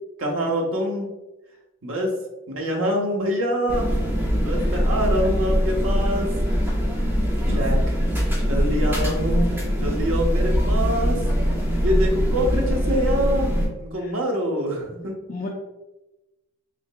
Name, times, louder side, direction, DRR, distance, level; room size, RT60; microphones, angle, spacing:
voice 1, 0.2-1.1 1.8-2.1 2.5-3.9 4.4-6.3 7.5-7.8 8.4-11.2 11.8-15.1, equal, 75° right, 0 dB, 1.1 m, -25 dB
sound 1, 3.7-13.7, equal, 10° right, 0.9 m, -22 dB
voice 2, 7.5-7.8 11.7-11.9 14.0-14.1 15.3-15.5, left 3 dB, 40° left, -3 dB, 0.5 m, -34 dB
6.1 x 2.9 x 2.3 m, 1.0 s
head